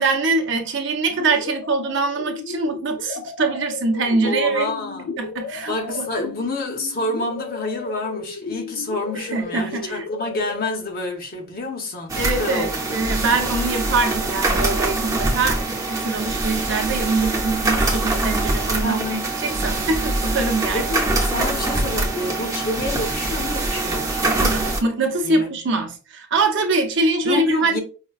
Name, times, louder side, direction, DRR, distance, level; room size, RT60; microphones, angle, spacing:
voice 1, 0.0-4.7 5.2-6.1 9.1-10.0 12.2-20.9 24.2-27.8, right 3 dB, 55° right, 0.6 m, -23 dB
sound 1, 1.2-10.7, left 5 dB, 80° left, 0.3 m, -35 dB
voice 2, 4.2-5.1 5.7-13.0 18.7-19.3 20.7-24.5 25.2-25.6 27.2-27.8, left 2 dB, 45° left, 0.8 m, -28 dB
sound 2, 12.1-24.8, right 2 dB, 15° right, 0.6 m, -24 dB
4.9 x 2.1 x 2.3 m
head